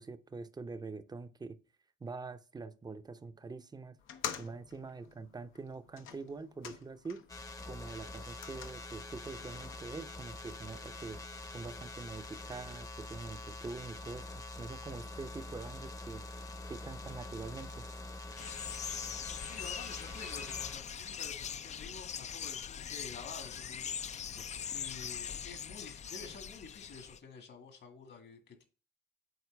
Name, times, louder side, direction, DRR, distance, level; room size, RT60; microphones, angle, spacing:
voice 1, 0.0-1.6 2.0-4.0 4.4-7.2 7.6-11.2 11.5-14.3 14.6-17.9, right 4 dB, 20° right, 0.6 m, -45 dB
sound 1, 4.0-7.4 7.7-9.8, left 9 dB, 85° left, 0.8 m, -47 dB
sound 2, 7.3-20.8, left 2 dB, 15° left, 0.7 m, -45 dB
sound 3, 18.4-27.2, left 8 dB, 35° left, 0.4 m, -41 dB
voice 2, 19.4-28.6, left 5 dB, 65° left, 1.8 m, -50 dB
7.9 x 4.4 x 3.3 m
cardioid pair, 90°, 20 cm